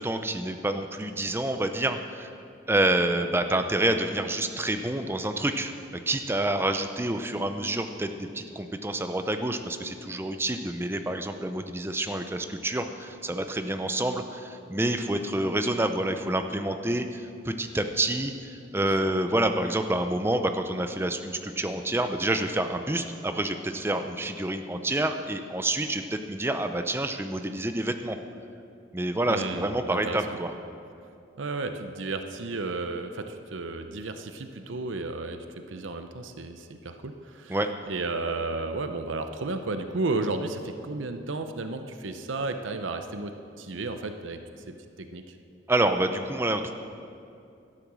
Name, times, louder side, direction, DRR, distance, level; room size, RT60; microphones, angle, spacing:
voice 1, 0.0-2.3 2.7-5.7 6.1-28.2 28.9-30.5 37.5-37.7 45.7-46.7, right 1 dB, 10° right, 7 dB, 0.5 m, -28 dB
voice 2, 29.3-30.2 31.4-37.6 37.9-44.4 44.7-45.4, right 3 dB, 85° right, 7 dB, 0.7 m, -33 dB
12.5 x 10.0 x 6.2 m, 2.6 s
head